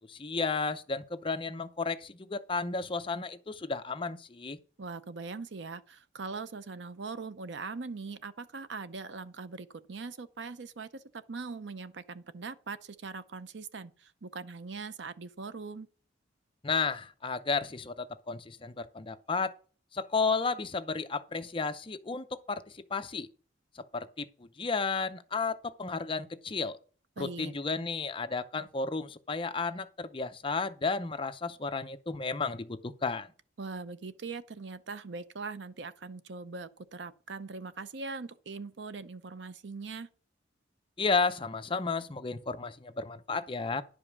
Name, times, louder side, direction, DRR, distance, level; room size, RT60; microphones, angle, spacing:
voice 1, 0.0-4.6 16.6-19.5 19.9-23.3 23.7-26.8 27.2-33.3 41.0-43.8, left 4 dB, 30° left, 0.6 m, -33 dB
voice 2, 4.8-15.9 27.2-27.5 33.6-40.1, right 4 dB, 65° right, 0.7 m, -41 dB
11.0 x 5.3 x 6.0 m
head